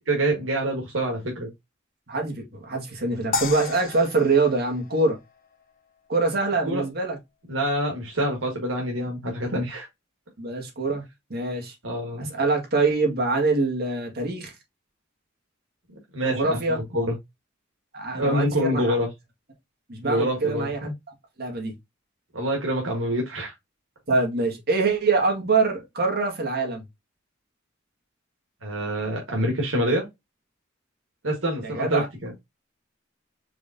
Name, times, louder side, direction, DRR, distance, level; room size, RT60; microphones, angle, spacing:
voice 1, 0.1-1.5 6.6-6.8 7.5-9.9 11.8-12.3 16.1-17.1 18.1-19.1 20.0-20.9 22.3-23.5 28.6-30.1 31.2-32.4, right 1 dB, 90° right, 1.5 m, -26 dB
voice 2, 2.1-5.2 6.1-7.2 10.4-11.0 11.3-11.7 12.2-14.5 16.2-16.8 17.9-19.0 19.9-20.8 21.4-21.7 24.1-26.8 31.6-32.1, right 3 dB, 55° right, 1.8 m, -24 dB
sound 1, 3.3-5.7, left 4 dB, 45° left, 0.9 m, -33 dB
4.8 x 3.5 x 2.7 m
head